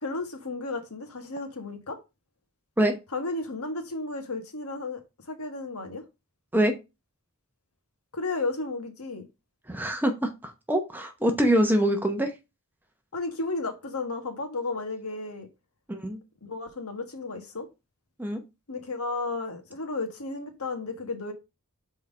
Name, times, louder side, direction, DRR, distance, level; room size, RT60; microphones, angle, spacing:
voice 1, 0.0-2.0 3.1-6.0 8.1-9.3 13.1-15.5 16.4-17.7 18.7-21.3, left 3 dB, 85° left, 1.5 m, -33 dB
voice 2, 9.7-12.3 15.9-16.2 18.2-18.4, equal, 10° right, 0.9 m, -24 dB
5.5 x 4.4 x 5.1 m
head